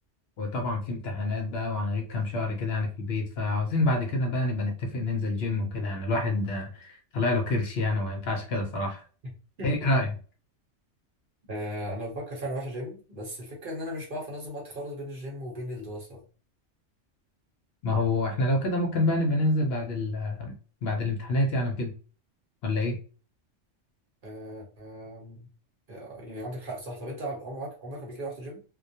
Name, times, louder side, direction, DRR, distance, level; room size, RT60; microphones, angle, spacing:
voice 1, 0.4-9.0 9.6-10.1 17.8-20.5 20.8-21.9 22.6-23.0, left 2 dB, 65° left, 1 dB, 0.7 m, -27 dB
voice 2, 9.6-9.9 11.5-16.2 24.2-25.5 25.9-28.6, equal, 50° right, -2 dB, 0.9 m, -37 dB
2.2 x 2.2 x 2.6 m, 0.37 s
omnidirectional pair, 1.3 m